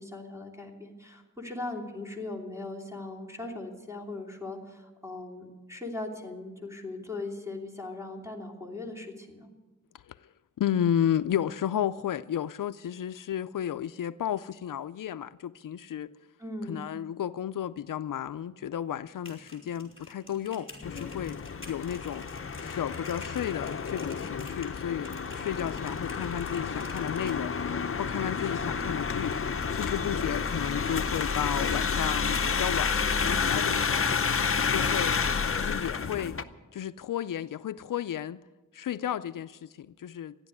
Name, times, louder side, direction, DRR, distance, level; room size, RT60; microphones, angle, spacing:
voice 1, 0.0-9.5 16.4-16.8, left 2 dB, 10° right, 3.1 m, -39 dB
voice 2, 10.6-16.1 16.7-21.4 21.7-22.3 22.6-29.4 29.8-34.4 34.7-36.4 36.7-38.4 38.7-40.4, left 10 dB, 75° left, 0.5 m, -33 dB
sound 1, 19.1-27.4, left 2 dB, 20° left, 3.7 m, -49 dB
sound 2, 20.8-36.4, left 5 dB, 40° left, 0.7 m, -30 dB
14.5 x 10.5 x 9.5 m
wide cardioid pair, 95°, 32 cm